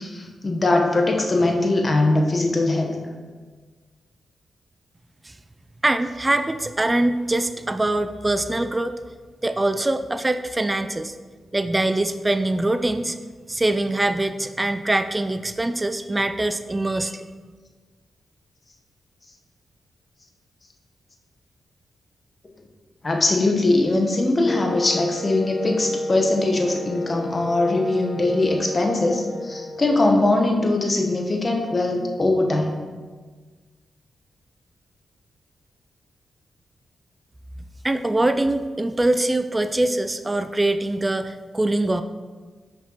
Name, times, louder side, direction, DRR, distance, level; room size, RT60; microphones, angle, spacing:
voice 1, 0.0-3.0 23.0-32.8, left 2 dB, 40° left, 2 dB, 1.0 m, -21 dB
voice 2, 5.8-8.9 9.4-11.1 11.5-13.2 13.5-17.3 37.8-42.0, right 2 dB, 25° right, 9 dB, 0.3 m, -23 dB
Wind instrument woodwind instrument, 24.5-30.1, left 1 dB, 65° left, 1.6 m, -32 dB
5.9 x 5.8 x 2.9 m, 1.4 s
supercardioid pair, 45°, 0 cm